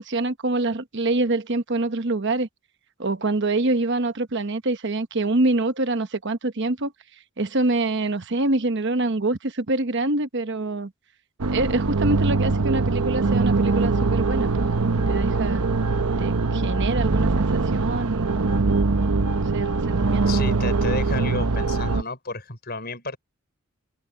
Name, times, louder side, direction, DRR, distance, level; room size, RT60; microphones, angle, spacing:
voice 1, 0.0-2.5 3.0-6.9 7.4-10.9 11.5-14.5 14.8-15.6 16.2-18.8 19.4-20.3, right 2 dB, 50° right, 1.1 m, -25 dB
sound 1, 11.4-22.0, right 3 dB, 90° right, 0.9 m, -22 dB
voice 2, 20.3-23.2, left 3 dB, 45° left, 5.0 m, -32 dB
head